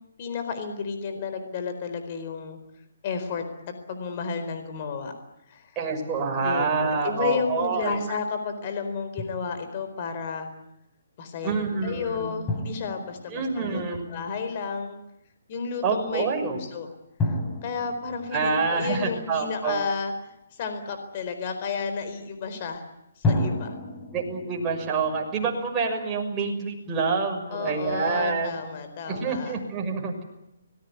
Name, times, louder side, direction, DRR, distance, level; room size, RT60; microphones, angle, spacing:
voice 1, 0.2-2.6 3.0-5.1 5.5-5.7 6.4-10.5 11.2-15.0 15.5-16.9 17.2-20.1 20.5-22.8 23.3-23.8 27.5-29.6, left 5 dB, 35° left, 7 dB, 4.3 m, -32 dB
voice 2, 5.7-8.0 11.4-12.3 13.3-14.0 15.8-16.6 18.3-19.8 24.1-28.6 29.1-30.2, right 4 dB, 15° right, -1 dB, 6.4 m, -27 dB
Drum, 9.2-9.9 12.5-14.2 17.2-19.7 23.2-26.4, left 1 dB, 10° left, 3.5 m, -32 dB
25.0 x 20.5 x 9.6 m, 0.87 s
hypercardioid pair, 160°, 0 cm